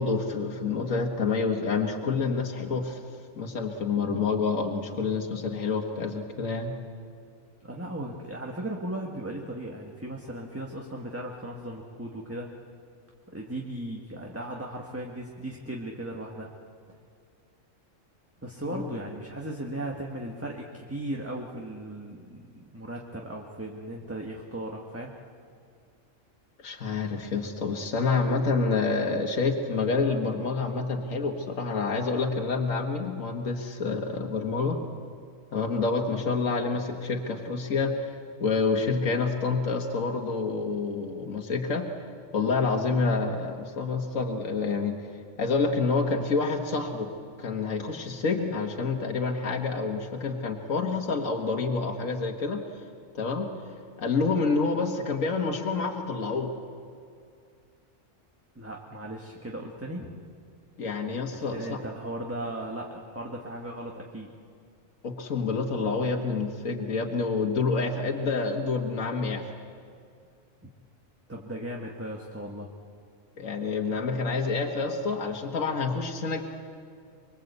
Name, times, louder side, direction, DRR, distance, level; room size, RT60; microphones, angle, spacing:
voice 1, 0.0-3.0 3.4-6.7 18.7-18.9 26.6-34.8 35.5-38.2 38.4-41.9 42.3-45.0 45.4-47.1 47.4-52.6 53.1-53.5 54.0-56.5 60.8-61.8 65.0-69.5 73.4-76.4, left 4 dB, 85° left, 3 dB, 1.9 m, -28 dB
voice 2, 7.6-12.5 13.3-16.5 18.4-25.1 58.5-60.1 61.3-64.3 71.3-72.7, right 1 dB, 10° right, 0 dB, 1.5 m, -37 dB
24.5 x 23.5 x 8.2 m, 2.3 s
omnidirectional pair, 1.3 m